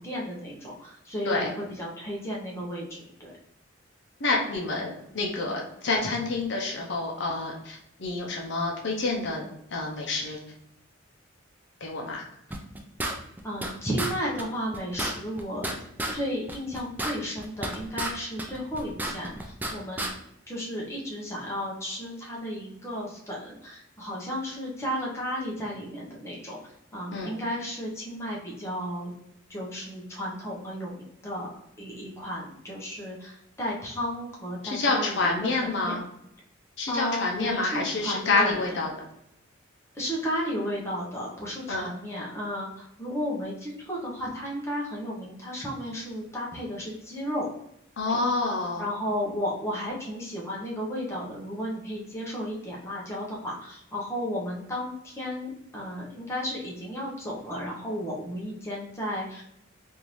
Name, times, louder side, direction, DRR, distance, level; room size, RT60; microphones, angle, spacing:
voice 1, 0.0-3.3 13.4-15.8 16.1-20.0 20.5-26.6 26.9-29.1 29.5-35.5 35.8-36.0 36.9-38.6 39.9-47.5 48.1-48.2 48.8-59.4, equal, 15° left, -4 dB, 0.8 m, -33 dB
voice 2, 4.2-9.4 9.7-10.4 11.8-12.2 27.1-27.3 34.6-36.0 36.8-38.9 41.7-41.9 48.0-48.9, left 3 dB, 60° left, 0 dB, 0.6 m, -28 dB
sound 1, 12.5-13.7 14.0-14.1 14.4-14.5 14.7-16.2 16.5-18.1 18.4-19.7 20.0-20.1, right 1 dB, 10° right, 0.3 m, -31 dB
3.5 x 2.6 x 3.0 m, 0.77 s
head